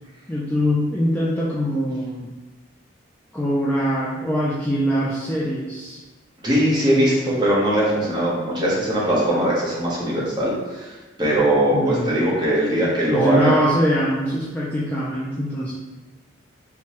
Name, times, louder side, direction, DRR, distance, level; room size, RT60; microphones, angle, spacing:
voice 1, 0.3-2.3 3.3-6.0 11.7-12.1 13.1-15.7, equal, 10° left, -7 dB, 0.4 m, -23 dB
voice 2, 6.4-13.5, right 1 dB, 20° right, -6 dB, 1.0 m, -20 dB
4.5 x 2.2 x 2.9 m, 1.2 s
head